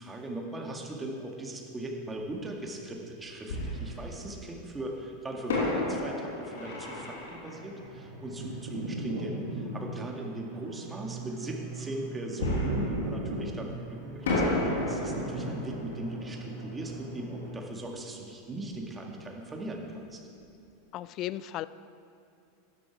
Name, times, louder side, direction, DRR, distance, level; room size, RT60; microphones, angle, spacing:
voice 1, 0.0-20.2, right 1 dB, 15° right, 1 dB, 2.0 m, -39 dB
Fireworks, 2.2-2.3 3.5-4.6 5.5-8.9 12.4-13.8 14.2-18.8 19.0-19.1 19.7-19.9, left 1 dB, 70° left, 3.0 m, -33 dB
sound 1, 7.5-17.6, right 2 dB, 60° right, 2.6 m, -39 dB
voice 2, 20.9-21.7, left 14 dB, 45° left, 17 dB, 0.4 m, -35 dB
13.0 x 10.5 x 4.7 m, 2.5 s
hypercardioid pair, 90°, 0 cm